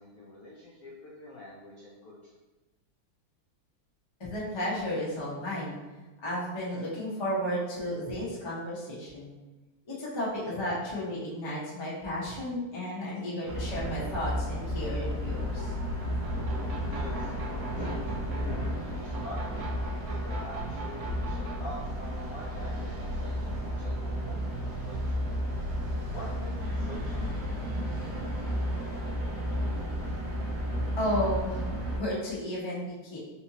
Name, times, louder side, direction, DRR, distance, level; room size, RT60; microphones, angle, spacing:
voice 1, 0.0-2.2 16.9-18.5 19.0-19.4 19.9-22.9 23.2-23.3 23.6-24.6 24.8-25.2 26.1-27.6, left 1 dB, 70° left, -5 dB, 0.8 m, -46 dB
voice 2, 4.2-5.8 6.2-9.3 9.8-15.7 31.0-31.6 31.9-33.2, equal, 30° left, -7 dB, 0.4 m, -33 dB
sound 1, 13.4-32.0, equal, 65° right, 1.0 m, -32 dB
4.2 x 2.8 x 2.8 m, 1.1 s
omnidirectional pair, 2.2 m